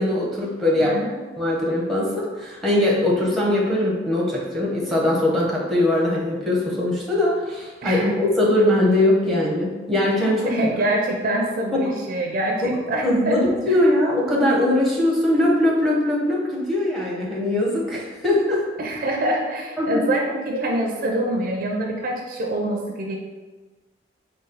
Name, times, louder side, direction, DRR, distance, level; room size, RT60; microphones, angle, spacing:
voice 1, 0.0-1.0 1.4-10.5 11.7-11.9 12.6-12.7 13.0-18.6 19.8-20.0, left 1 dB, ahead, -5 dB, 0.7 m, -21 dB
voice 2, 0.8-1.2 7.8-8.1 10.4-13.8 18.8-23.2, right 1 dB, 50° right, 1 dB, 0.4 m, -25 dB
4.0 x 2.3 x 3.8 m, 1.3 s
head